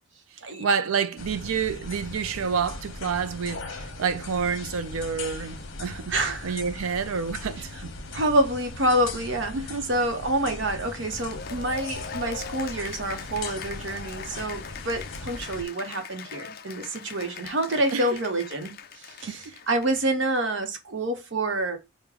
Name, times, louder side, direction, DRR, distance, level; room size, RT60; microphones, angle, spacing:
voice 1, 0.6-6.1 6.4-7.9 9.5-9.9 17.9-18.1 19.3-19.6, right 6 dB, 90° right, 0.4 m, -28 dB
sound 1, 1.2-15.6, left 3 dB, 65° left, 0.9 m, -39 dB
voice 2, 6.1-6.6 8.1-9.6 9.9-21.8, right 1 dB, 60° right, 0.8 m, -27 dB
Cheering / Applause, 11.1-20.6, left 6 dB, 45° left, 0.4 m, -41 dB
4.7 x 2.1 x 3.5 m
head